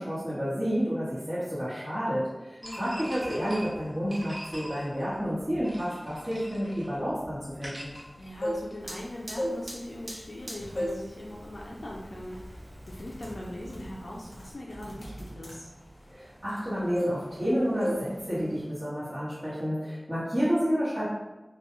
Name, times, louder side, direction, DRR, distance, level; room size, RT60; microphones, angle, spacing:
voice 1, 0.0-7.9 16.1-21.1, equal, 20° right, -14 dB, 1.0 m, -30 dB
voice 2, 2.6-2.9 8.2-12.4 12.9-15.7, left 1 dB, 75° left, -4 dB, 0.3 m, -40 dB
sound 1, 2.6-8.9, equal, 45° right, 1.1 m, -44 dB
sound 2, 8.2-9.0 9.3-10.4 10.8-11.1 11.5-11.7 12.3-12.5 12.8-16.7 17.0-17.5 17.8-18.1 18.4-18.6, equal, 50° left, 0.7 m, -34 dB
Fire, 8.8-14.6, right 1 dB, 80° right, 0.6 m, -46 dB
2.2 x 2.1 x 3.0 m, 1.1 s
wide cardioid pair, 45°, 0 cm